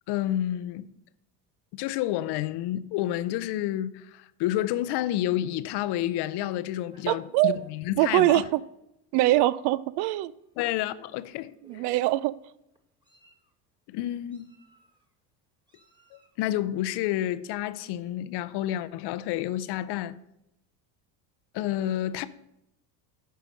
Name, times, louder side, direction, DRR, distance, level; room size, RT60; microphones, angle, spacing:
voice 1, 0.1-0.9 1.7-8.4 10.6-11.8 13.9-14.5 16.1-20.2 21.5-22.3, left 13 dB, 55° left, 0.6 m, -30 dB
Meow, 6.1-7.7 8.4-8.6 9.4-9.5 9.9-10.1 11.1-11.3 11.6-12.2 12.8-13.5 14.3-15.0 15.7-16.4, right 1 dB, 10° right, 1.7 m, -56 dB
voice 2, 7.1-7.6 8.0-8.6 9.1-10.3 11.7-12.4, right 16 dB, 55° right, 0.5 m, -23 dB
9.2 x 5.6 x 6.4 m
hypercardioid pair, 80°, 49 cm